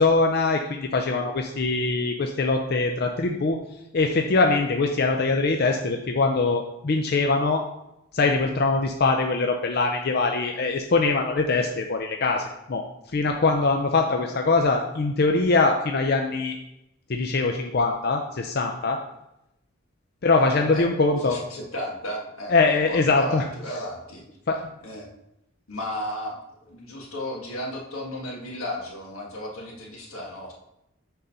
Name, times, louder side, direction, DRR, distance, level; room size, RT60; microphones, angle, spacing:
voice 1, 0.0-3.6 3.9-7.6 8.1-12.4 12.7-12.8 13.1-16.6 17.1-19.0 20.2-21.4 22.5-23.4 24.5-24.6, left 3 dB, 50° left, 3 dB, 0.5 m, -22 dB
voice 2, 21.2-22.6 22.9-24.2 24.8-25.1 25.7-26.4 26.6-30.5, left 1 dB, 85° left, -1 dB, 1.7 m, -34 dB
6.7 x 3.8 x 5.5 m, 0.85 s
head